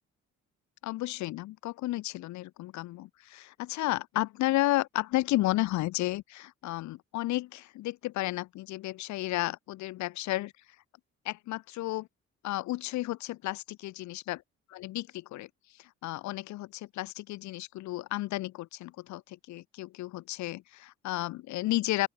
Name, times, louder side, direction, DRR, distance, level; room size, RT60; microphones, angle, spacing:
voice 1, 0.8-10.5 11.3-12.1 12.4-14.4 14.7-15.5 15.8-22.1, left 17 dB, 70° left, 0.5 m, -32 dB
open air
cardioid pair, 90°, 30 cm